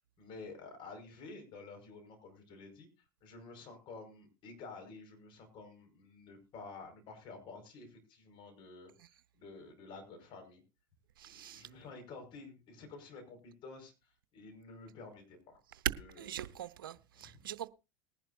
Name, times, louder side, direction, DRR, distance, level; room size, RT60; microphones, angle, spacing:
voice 1, 0.0-2.9 3.2-8.9 9.4-10.6 11.5-13.9 14.3-15.6 16.0-16.5 17.1-17.4, left 3 dB, 45° left, 5.4 m, -51 dB
voice 2, 11.2-11.7 16.2-17.7, right 11 dB, 75° right, 0.7 m, -45 dB
20.0 x 11.0 x 2.7 m
hypercardioid pair, 85°, 11 cm